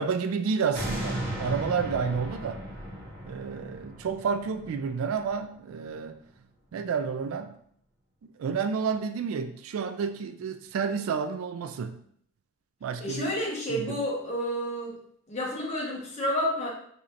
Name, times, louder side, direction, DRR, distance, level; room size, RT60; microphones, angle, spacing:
voice 1, 0.0-2.6 3.2-6.2 6.7-7.6 8.4-12.0 12.8-13.3 13.7-14.0, right 6 dB, 70° right, 9 dB, 0.3 m, -30 dB
sound 1, 0.7-5.8 6.3-6.4, right 1 dB, 25° right, 0.9 m, -36 dB
voice 2, 13.0-14.9 15.3-16.7, equal, 30° left, -5 dB, 1.1 m, -30 dB
4.3 x 2.7 x 2.5 m, 0.64 s
head